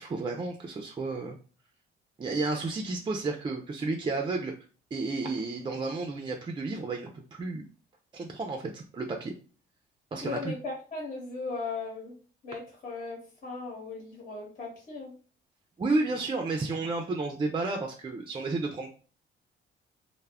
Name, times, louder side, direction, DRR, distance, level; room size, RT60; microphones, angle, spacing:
voice 1, 0.0-1.4 2.2-4.5 4.9-7.6 8.1-9.3 10.1-10.5 15.8-18.9, right 3 dB, 25° right, 3 dB, 0.4 m, -32 dB
voice 2, 10.2-12.1 12.4-15.1, left 4 dB, 45° left, -5 dB, 1.1 m, -37 dB
2.2 x 2.0 x 3.4 m, 0.39 s
cardioid pair, 90°, 20 cm